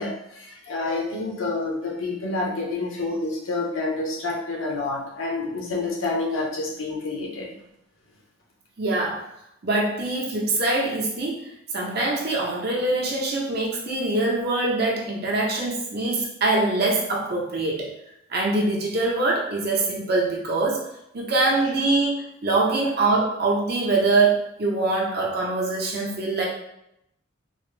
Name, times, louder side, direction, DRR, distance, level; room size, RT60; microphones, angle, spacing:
voice 1, 0.0-7.5, left 3 dB, 85° left, -1 dB, 0.8 m, -28 dB
voice 2, 8.8-9.3 9.6-17.9 18.3-20.9 21.1-26.5, right 2 dB, 55° right, -2 dB, 0.8 m, -24 dB
4.1 x 2.0 x 3.2 m, 0.81 s
head